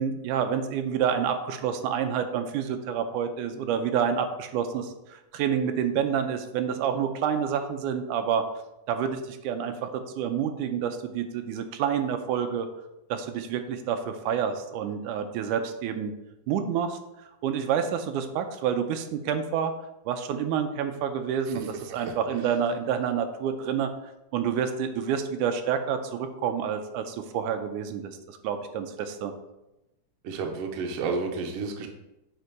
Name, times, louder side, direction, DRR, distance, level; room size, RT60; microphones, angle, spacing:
voice 1, 0.0-8.4 8.9-12.7 13.1-16.1 16.5-17.0 17.4-19.7 20.1-23.9 24.3-29.3, right 8 dB, 90° right, 7 dB, 2.1 m, -28 dB
voice 2, 21.5-22.5 30.2-31.9, right 4 dB, 65° right, 2 dB, 1.7 m, -32 dB
6.6 x 4.4 x 4.7 m, 0.94 s
omnidirectional pair, 3.6 m